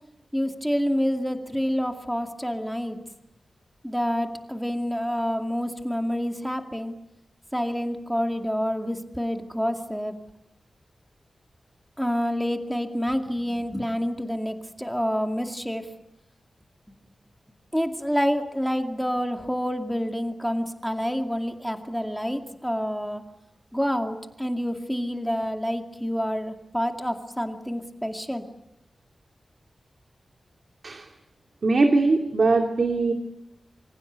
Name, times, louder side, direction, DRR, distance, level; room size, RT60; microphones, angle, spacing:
voice 1, 0.3-3.0 3.8-6.9 7.5-10.1 12.0-15.9 17.7-23.2 23.7-28.4, equal, ahead, 4 dB, 2.3 m, -28 dB
voice 2, 31.6-33.1, right 3 dB, 50° right, 4 dB, 2.5 m, -21 dB
27.5 x 25.0 x 8.2 m, 0.86 s
wide cardioid pair, 135°, 0 cm